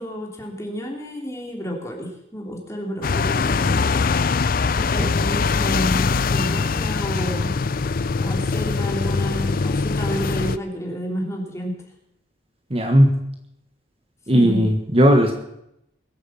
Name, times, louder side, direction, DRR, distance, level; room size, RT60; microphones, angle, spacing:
voice 1, 0.0-4.2 4.8-7.5 8.2-11.7 14.3-14.7, equal, 15° left, 0 dB, 3.2 m, -30 dB
sound 1, 3.0-10.6, left 4 dB, 50° left, 0.5 m, -22 dB
voice 2, 12.7-13.2 14.3-15.3, equal, 30° right, 4 dB, 1.5 m, -16 dB
21.5 x 8.3 x 7.4 m, 0.82 s
head